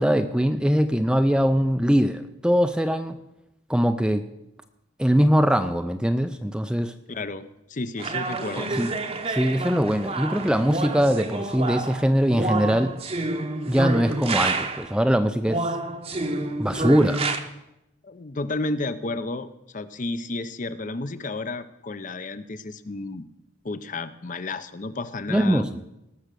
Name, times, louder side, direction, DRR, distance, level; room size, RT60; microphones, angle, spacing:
voice 1, 0.0-3.2 3.7-4.2 5.0-6.9 8.6-8.9 9.3-12.9 13.7-15.8 16.6-17.3 25.3-25.7, equal, 5° right, 9 dB, 0.4 m, -22 dB
voice 2, 7.1-8.7 18.0-23.2 23.6-25.7, left 2 dB, 40° left, 12 dB, 0.6 m, -32 dB
sound 1, 8.0-15.0 15.5-17.4, right 2 dB, 30° right, 0.8 m, -29 dB
18.5 x 6.5 x 6.7 m, 0.90 s
head